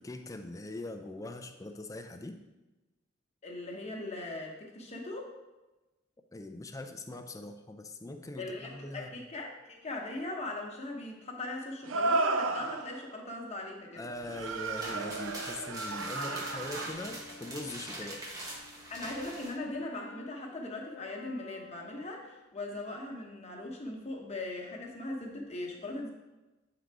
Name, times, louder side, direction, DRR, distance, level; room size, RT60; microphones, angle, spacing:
voice 1, 0.0-2.4 6.3-9.2 13.9-18.2, left 2 dB, 15° left, 6 dB, 0.5 m, -42 dB
voice 2, 3.4-5.3 8.4-14.1 16.2-16.4 18.0-18.1 18.9-26.1, left 2 dB, 35° left, 0 dB, 1.1 m, -39 dB
sound 1, 8.7-8.8 11.9-13.1 14.3-16.9, right 3 dB, 90° right, 0.5 m, -33 dB
Brass instrument, 13.9-17.9 18.4-22.5, left 3 dB, 70° left, 0.5 m, -50 dB
sound 2, 14.2-19.6, right 1 dB, 20° right, 1.1 m, -43 dB
7.8 x 3.9 x 4.7 m, 1.1 s
head